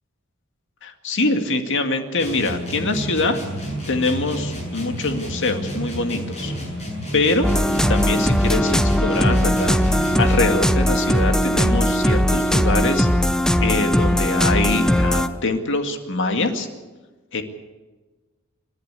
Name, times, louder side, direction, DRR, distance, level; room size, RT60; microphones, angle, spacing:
voice 1, 0.8-3.4 3.9-6.5 7.1-7.5 7.9-13.3 13.6-16.7 17.3-17.4, left 2 dB, 60° left, 6 dB, 2.1 m, -24 dB
sound 1, 2.2-10.7, right 1 dB, 30° left, 7.7 m, -30 dB
sound 2, 7.4-15.3, equal, 5° left, 0.8 m, -19 dB
28.0 x 11.5 x 8.3 m, 1.3 s
head